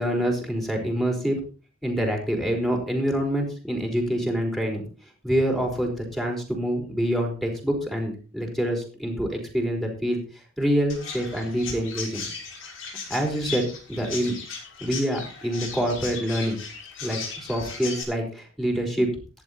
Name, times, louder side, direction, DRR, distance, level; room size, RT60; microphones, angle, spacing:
voice 1, 0.0-1.4 1.8-4.8 5.2-10.2 10.6-12.2 13.1-14.3 14.8-16.6 17.0-19.1, equal, ahead, 1 dB, 4.6 m, -26 dB
Chirp tweet, 10.9-18.0, left 5 dB, 70° left, 6.5 m, -37 dB
15.0 x 11.0 x 4.3 m, 0.36 s
head